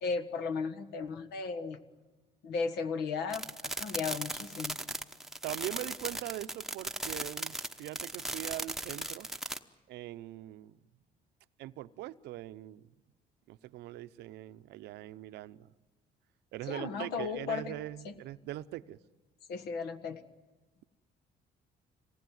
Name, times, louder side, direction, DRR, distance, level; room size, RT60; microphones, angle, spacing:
voice 1, 0.0-1.8 2.4-4.8 16.7-17.7 18.0-18.1 19.5-20.2, left 5 dB, 75° left, 11 dB, 1.6 m, -35 dB
sound 1, 3.3-9.6, right 1 dB, ahead, 0.9 m, -37 dB
voice 2, 5.4-9.3 9.9-10.8 11.6-12.9 13.5-15.7 16.5-19.0, right 15 dB, 80° right, 13 dB, 0.7 m, -42 dB
26.0 x 19.0 x 9.4 m, 1.2 s
cardioid pair, 110°, 17 cm